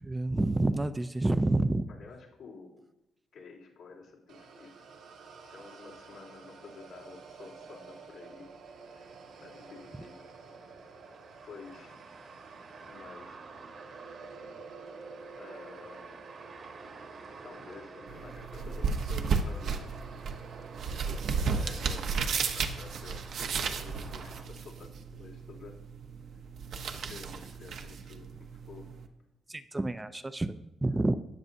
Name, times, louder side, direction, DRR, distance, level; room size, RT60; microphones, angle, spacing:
voice 1, 0.0-1.8 29.5-31.1, right 2 dB, 15° right, 10 dB, 0.5 m, -28 dB
voice 2, 1.9-2.8 3.3-4.8 5.5-8.5 9.4-10.2 11.4-12.0 12.9-13.5 15.4-16.2 17.4-19.9 21.0-25.7 26.9-28.8, left 4 dB, 75° left, -4 dB, 3.4 m, -50 dB
sound 1, 4.3-22.5, right 4 dB, 85° right, 2.1 m, -50 dB
sound 2, 8.6-24.4, right 4 dB, 50° right, 1.3 m, -52 dB
sound 3, 18.1-29.1, right 5 dB, 65° right, 0.9 m, -34 dB
13.5 x 9.6 x 2.7 m, 0.91 s
cardioid pair, 90°, 0 cm